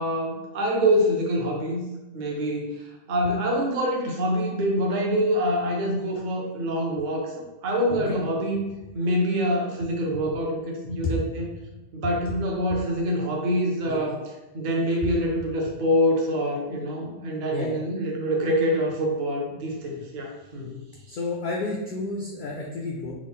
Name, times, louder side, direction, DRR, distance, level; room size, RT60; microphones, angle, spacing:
voice 1, 0.0-1.8 2.1-7.3 7.6-8.7 8.9-11.5 11.9-14.2 14.5-20.8, equal, 45° right, -1 dB, 0.7 m, -25 dB
voice 2, 21.1-23.1, left 3 dB, 65° left, -3 dB, 0.5 m, -30 dB
3.6 x 2.1 x 3.5 m, 1.0 s
omnidirectional pair, 1.3 m